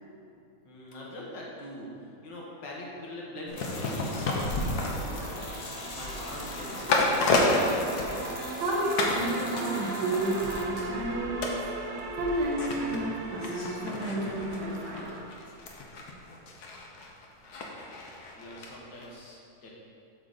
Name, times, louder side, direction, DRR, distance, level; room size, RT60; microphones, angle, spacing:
voice 1, 0.6-1.9 2.2-5.5 5.9-7.3 18.3-19.7, left 1 dB, 80° left, -4 dB, 2.1 m, -43 dB
sound 1, 3.5-8.6 9.0-9.3 9.6-18.7 19.0-19.1, left 2 dB, 65° left, 1.4 m, -31 dB
sound 2, 3.6-10.6, left 2 dB, 50° left, 0.4 m, -42 dB
sound 3, 4.1-15.2, right 3 dB, 55° right, 0.9 m, -40 dB
voice 2, 8.6-11.7 12.2-15.1, right 1 dB, 75° right, -2 dB, 1.8 m, -31 dB
8.6 x 4.0 x 6.5 m, 2.6 s
omnidirectional pair, 1.9 m